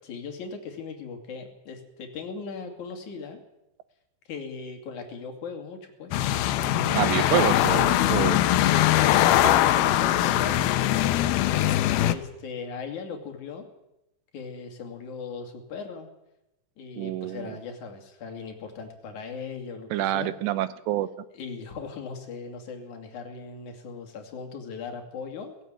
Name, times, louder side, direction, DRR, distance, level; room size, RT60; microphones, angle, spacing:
voice 1, 0.0-3.4 4.3-6.3 6.5-7.3 7.9-11.4 12.0-13.7 14.3-16.1 16.8-20.3 21.3-25.5, left 5 dB, 45° left, 3 dB, 3.6 m, -38 dB
sound 1, 6.1-12.1, left 13 dB, 80° left, 2.2 m, -21 dB
voice 2, 6.9-8.4 9.4-9.5 17.0-17.6 19.9-21.1, right 13 dB, 75° right, 14 dB, 2.8 m, -27 dB
17.0 x 17.0 x 9.2 m, 0.89 s
omnidirectional pair, 5.5 m